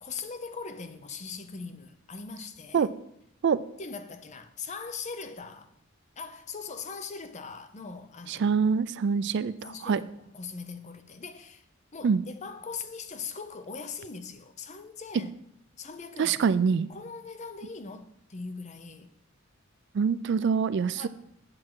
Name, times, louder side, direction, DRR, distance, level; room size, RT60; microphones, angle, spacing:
voice 1, 0.0-2.9 3.8-5.7 6.2-8.5 9.2-9.4 9.6-11.6 11.9-15.3 15.8-16.4 16.9-19.1 20.9-21.1, left 5 dB, 35° left, 0.6 m, -40 dB
voice 2, 8.3-10.0 12.0-12.2 16.2-16.9 19.9-21.1, right 6 dB, 55° right, 0.3 m, -25 dB
7.7 x 7.4 x 4.6 m
head